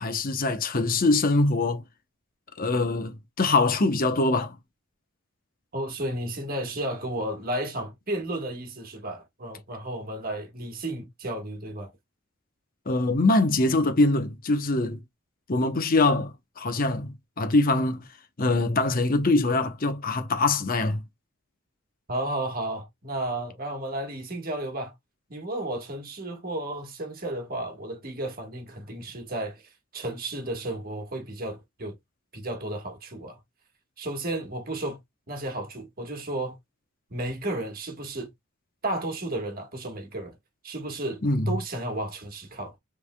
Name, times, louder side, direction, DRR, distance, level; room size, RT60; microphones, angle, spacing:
voice 1, 0.0-1.8 2.6-4.6 12.9-15.0 15.5-18.0 18.4-21.0 41.2-41.5, left 2 dB, 45° left, 0.8 m, -23 dB
voice 2, 5.7-11.9 22.1-24.9 25.3-32.0 32.3-33.4 34.0-35.0 35.3-36.6 37.1-38.3 38.8-40.4 40.6-41.2 41.5-42.7, right 1 dB, 45° right, 1.5 m, -33 dB
5.3 x 3.4 x 2.2 m
head